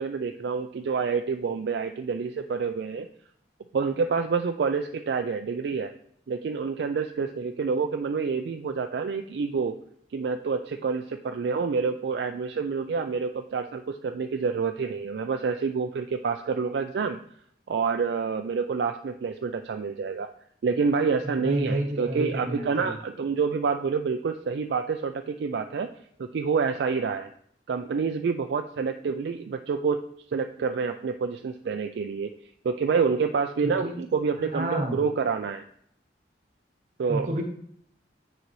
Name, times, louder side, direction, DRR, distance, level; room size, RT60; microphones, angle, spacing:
voice 1, 0.0-3.1 3.7-5.9 6.3-9.7 10.1-17.2 17.7-20.3 20.6-25.9 26.3-27.3 27.7-30.0 30.3-32.3 32.6-35.6 37.0-37.3, right 5 dB, 65° right, 6 dB, 0.3 m, -28 dB
voice 2, 21.2-23.0 33.6-34.0 34.4-35.0 37.1-37.4, right 1 dB, 45° right, 2 dB, 1.3 m, -30 dB
9.4 x 3.8 x 3.1 m, 0.67 s
head